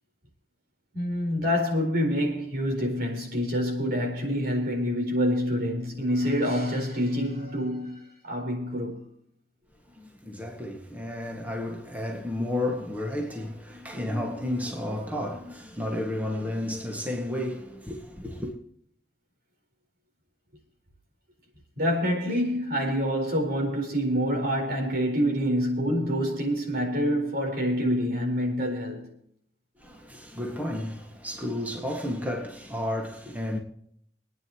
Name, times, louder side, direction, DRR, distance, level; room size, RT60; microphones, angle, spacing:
voice 1, 0.9-9.0 21.8-29.1, equal, 65° right, 4.5 m, -27 dB
voice 2, 9.9-18.5 29.8-33.6, left 1 dB, 10° right, 1.9 m, -32 dB
26.0 x 9.7 x 3.1 m
head